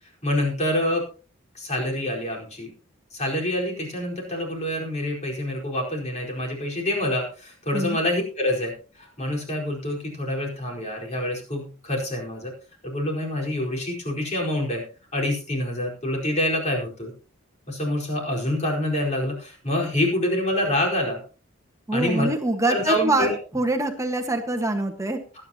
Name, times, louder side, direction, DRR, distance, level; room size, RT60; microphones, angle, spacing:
voice 1, 0.2-1.1 1.5-2.7 3.1-12.5 12.8-14.8 15.1-17.1 17.7-21.2 21.9-22.3 22.7-23.4 25.3-25.4, left 1 dB, 30° left, -1 dB, 4.5 m, -26 dB
voice 2, 21.9-25.2, right 2 dB, 15° right, 4 dB, 1.5 m, -24 dB
20.0 x 10.0 x 2.9 m, 0.37 s
head